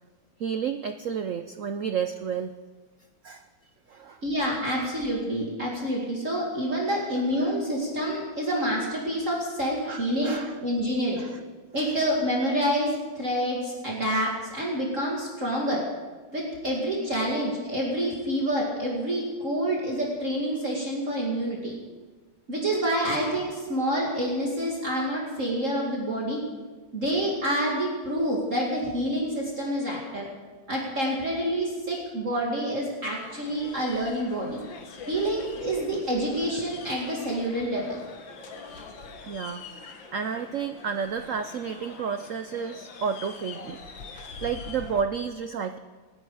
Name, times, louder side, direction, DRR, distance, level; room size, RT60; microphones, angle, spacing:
voice 1, 0.4-2.5 3.2-3.5 3.9-4.2 6.9-7.0 7.4-7.6 9.8-10.6 11.2-11.4 38.7-38.9 39.2-43.8 44.1-45.8, right 6 dB, 65° right, 8 dB, 0.8 m, -31 dB
voice 2, 4.2-11.2 11.7-15.8 16.3-21.8 22.5-26.4 26.9-30.3 30.7-34.6 35.1-38.0, equal, 40° right, -3 dB, 2.6 m, -27 dB
sound 1, 33.2-45.0, left 4 dB, 80° left, 2.1 m, -44 dB
27.0 x 10.0 x 4.9 m, 1.3 s
omnidirectional pair, 2.1 m